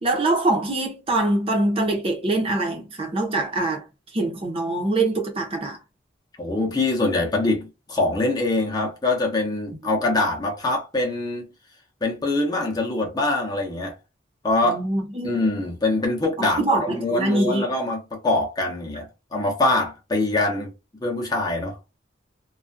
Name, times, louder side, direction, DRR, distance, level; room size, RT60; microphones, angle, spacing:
voice 1, 0.0-3.8 4.1-5.8 14.6-15.4 16.4-17.7, right 2 dB, 30° right, 0.6 m, -24 dB
voice 2, 6.4-11.5 12.0-13.9 14.4-14.8 15.2-20.7 21.0-21.8, left 2 dB, 20° left, 0.6 m, -24 dB
2.4 x 2.1 x 2.5 m
head